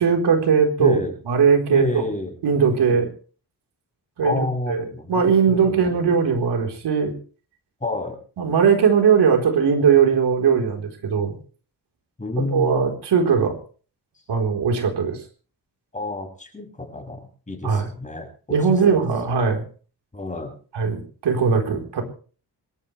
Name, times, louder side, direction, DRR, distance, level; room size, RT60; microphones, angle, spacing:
voice 1, 0.0-1.0 1.3-2.0 2.4-3.1 4.2-7.1 8.4-11.4 12.5-13.5 14.3-15.2 17.6-17.9 18.5-19.6 20.7-22.0, right 6 dB, 85° right, 3 dB, 4.2 m, -19 dB
voice 2, 0.8-1.1 1.7-2.4 2.7-3.0 4.2-5.2 5.5-6.1 7.8-8.2 12.2-12.9 15.9-18.6 18.9-19.0 20.1-20.5, left 2 dB, 20° left, 2 dB, 6.8 m, -29 dB
26.0 x 14.0 x 3.4 m, 0.41 s
wide cardioid pair, 115°, 40 cm